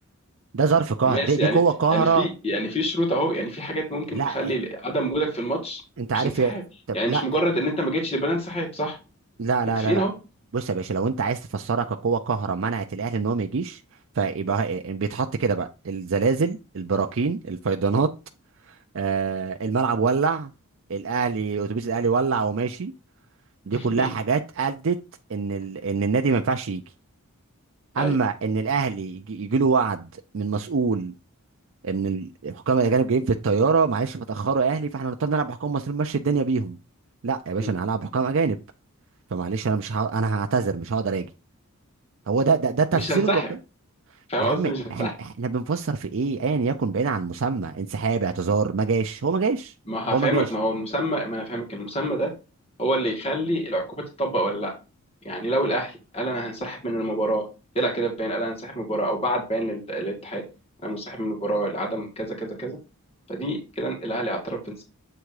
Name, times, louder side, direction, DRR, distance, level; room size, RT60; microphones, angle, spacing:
voice 1, 0.5-2.3 4.1-4.6 6.0-6.6 6.9-7.2 9.4-10.1 10.5-13.8 14.1-18.1 18.7-20.5 20.9-22.9 23.7-25.0 25.3-26.8 27.9-30.1 30.3-31.1 31.8-36.8 37.2-38.6 39.3-41.3 42.3-43.4 44.4-49.7 50.1-50.5, right 4 dB, 60° right, 0.5 m, -24 dB
voice 2, 1.1-1.6 1.9-5.8 6.1-6.6 6.9-9.0 9.8-10.1 23.7-24.1 28.0-28.2 37.6-37.7 42.9-43.5 44.3-45.1 49.9-52.3 52.8-53.8 54.2-54.7 55.2-57.4 57.7-60.4 60.8-62.8 63.3-64.8, right 1 dB, 25° left, 2.1 m, -27 dB
7.8 x 3.5 x 4.8 m
head